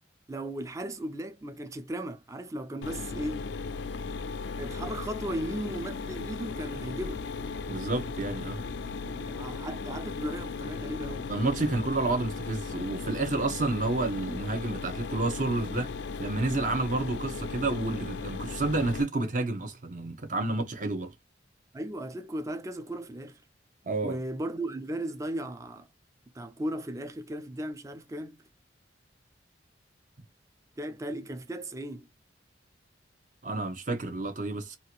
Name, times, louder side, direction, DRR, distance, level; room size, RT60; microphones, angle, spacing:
voice 1, 0.3-3.5 4.6-7.3 9.0-11.3 21.7-23.4 24.0-25.9 26.3-28.4 30.8-32.1, right 1 dB, 15° right, 0.4 m, -36 dB
Mechanisms, 2.8-19.0, left 4 dB, 65° left, 0.4 m, -37 dB
voice 2, 7.7-8.6 11.3-15.9 16.2-21.1 23.8-24.2 33.4-34.8, right 2 dB, 45° right, 0.8 m, -30 dB
2.8 x 2.4 x 2.9 m
head